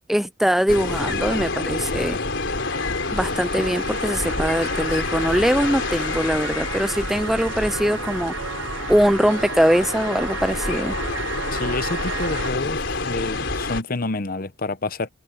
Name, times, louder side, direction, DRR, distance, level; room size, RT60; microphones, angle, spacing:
voice 1, 0.1-2.2 3.1-11.0, equal, ahead, 0.3 m, -22 dB
sound 1, 0.7-13.8, left 3 dB, 65° left, 4.2 m, -28 dB
Screaming, 2.6-3.4 5.8-7.2, left 8 dB, 85° left, 6.7 m, -38 dB
sound 2, 3.1-12.5, right 6 dB, 80° right, 0.9 m, -34 dB
voice 2, 11.5-15.1, left 2 dB, 45° left, 0.9 m, -28 dB
head